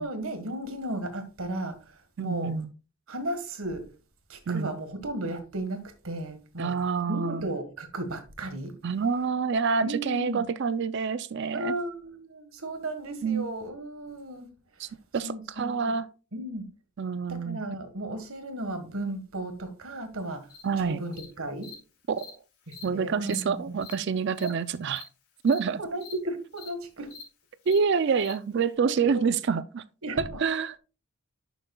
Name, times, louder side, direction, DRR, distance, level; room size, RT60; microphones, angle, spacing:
voice 1, 0.0-2.5 3.1-3.8 4.3-5.8 6.0-6.7 7.1-8.7 9.8-10.5 11.5-14.5 14.8-14.9 15.2-15.9 16.3-16.6 17.3-20.5 20.8-21.7 22.7-23.8 24.4-24.6 25.8-27.1 28.8-29.3 30.0-30.4, right 1 dB, 70° right, 1.6 m, -35 dB
voice 2, 2.2-2.7 4.5-4.7 6.6-7.5 8.8-11.7 13.2-13.5 14.8-14.9 15.1-16.1 17.0-17.6 20.6-21.0 22.1-22.3 22.8-25.0 25.4-25.8 27.7-29.8 30.2-30.8, right 5 dB, 50° right, 0.4 m, -27 dB
Cricket, 20.5-20.6 21.1-21.2 21.6-21.7 22.2-22.3 22.7-22.8 23.3-23.4 23.8-23.9 24.4-24.5 24.9-25.0 25.5-25.6 26.0-26.1 26.6-26.7 27.1-27.2 27.7-27.8 28.2-28.3, left 6 dB, 80° left, 3.2 m, -44 dB
11.0 x 7.1 x 2.3 m
head